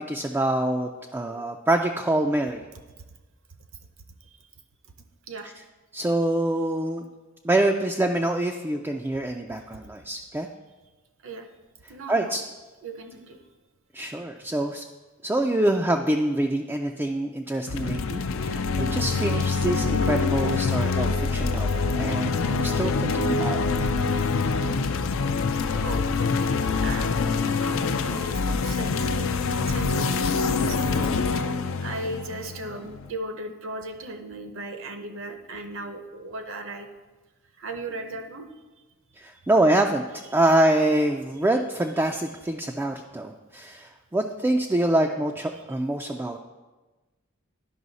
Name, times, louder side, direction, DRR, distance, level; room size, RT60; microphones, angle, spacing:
voice 1, 0.0-2.7 5.9-7.0 7.4-10.5 12.1-12.4 13.9-14.8 15.2-23.9 24.2-24.3 39.2-40.0 40.3-46.4, right 1 dB, 10° right, 2 dB, 0.3 m, -25 dB
voice 2, 11.9-12.4 12.8-13.4 25.7-29.3 29.7-31.5 31.8-36.9 37.6-38.4, right 2 dB, 65° right, 6 dB, 0.8 m, -37 dB
sound 1, 17.7-33.1, left 4 dB, 65° left, 0.5 m, -25 dB
11.0 x 5.5 x 4.0 m, 1.2 s
head